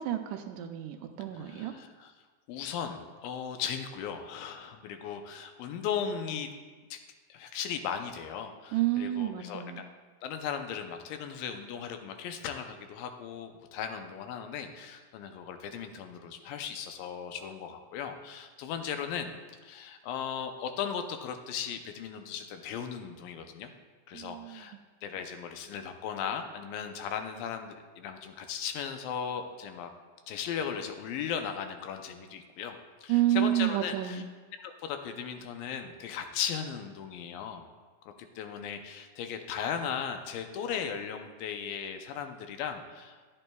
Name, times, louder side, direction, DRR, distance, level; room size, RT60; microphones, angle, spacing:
voice 1, 0.0-1.7 8.7-9.8 24.1-24.6 33.1-34.3, right 13 dB, 80° right, 6 dB, 1.9 m, -30 dB
voice 2, 1.3-2.1 2.5-6.5 6.9-7.0 7.3-9.9 10.2-19.3 19.6-23.7 24.1-24.8 25.0-29.9 30.3-32.8 33.0-34.2 34.6-37.6 38.2-43.2, left 7 dB, 90° left, 6 dB, 2.4 m, -37 dB
13.0 x 8.7 x 2.3 m, 1.4 s
omnidirectional pair, 3.9 m